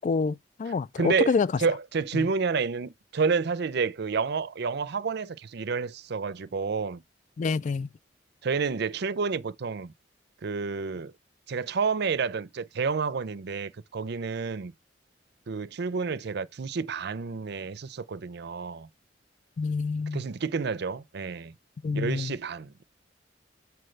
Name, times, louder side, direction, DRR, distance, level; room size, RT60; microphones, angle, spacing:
voice 1, 0.0-1.5 7.4-7.9 19.6-20.2 21.8-22.3, left 4 dB, 40° left, 0.3 m, -27 dB
voice 2, 0.7-7.0 8.4-9.9 10.4-11.1 11.5-14.7 15.5-18.9 20.1-21.5 21.9-22.8, right 5 dB, 60° right, 0.5 m, -29 dB
7.7 x 4.4 x 3.3 m
head